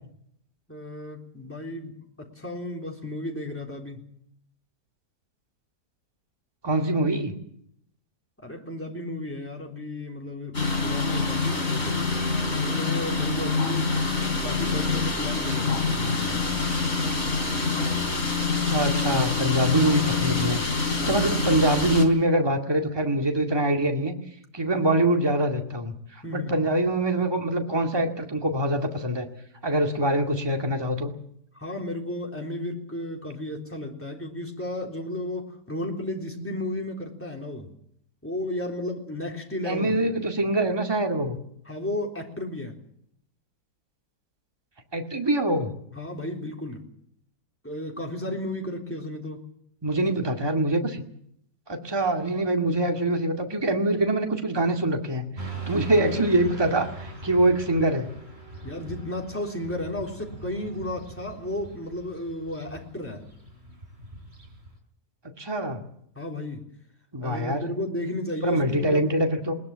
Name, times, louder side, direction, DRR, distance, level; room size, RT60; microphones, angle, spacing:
voice 1, 0.7-4.0 8.4-12.1 12.5-16.5 21.0-21.2 24.8-24.9 26.2-26.7 31.5-37.7 38.2-40.0 41.7-42.7 45.9-46.9 47.6-49.4 56.0-56.2 58.6-63.3 66.2-66.6 67.2-69.1, left 1 dB, 5° left, 0 dB, 3.6 m, -34 dB
voice 2, 6.6-7.3 18.7-24.1 24.5-25.9 26.3-29.3 29.6-31.1 39.7-41.4 44.9-45.7 49.8-51.0 51.7-58.1 65.4-65.8 67.1-67.6 68.4-69.5, right 1 dB, 15° right, 3 dB, 2.1 m, -24 dB
sound 1, 10.5-22.1, left 3 dB, 40° left, 3.8 m, -26 dB
Motorcycle / Traffic noise roadway noise, 55.4-64.8, right 2 dB, 40° right, 4.5 m, -41 dB
21.0 x 20.5 x 7.4 m, 0.70 s
omnidirectional pair, 1.8 m